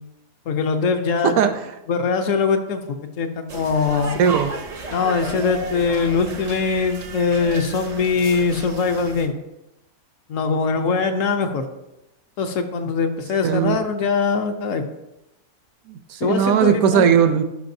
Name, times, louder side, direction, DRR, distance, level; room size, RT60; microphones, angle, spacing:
voice 1, 0.5-1.3 1.9-4.2 4.9-9.4 10.3-11.6 12.4-14.8 16.2-17.1, left 5 dB, 65° left, 6 dB, 1.0 m, -22 dB
sound 1, 3.5-9.3, right 4 dB, 45° right, 0.5 m, -34 dB
voice 2, 4.2-4.5 13.4-13.8 15.9-17.4, right 7 dB, 75° right, 9 dB, 1.1 m, -18 dB
11.5 x 5.1 x 2.7 m, 0.92 s
omnidirectional pair, 1.5 m